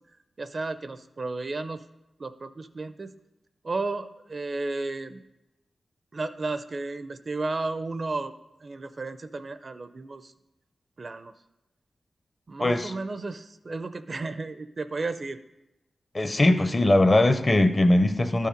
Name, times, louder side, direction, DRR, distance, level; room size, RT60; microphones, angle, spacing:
voice 1, 0.4-1.8 2.2-3.1 3.6-5.2 6.1-8.3 8.6-10.3 11.0-11.3 12.5-15.4, right 3 dB, 40° right, 11 dB, 0.4 m, -33 dB
voice 2, 12.6-12.9 16.1-18.5, left 1 dB, 25° left, 9 dB, 0.6 m, -20 dB
12.5 x 5.5 x 5.1 m, 0.96 s
wide cardioid pair, 150°, 0 cm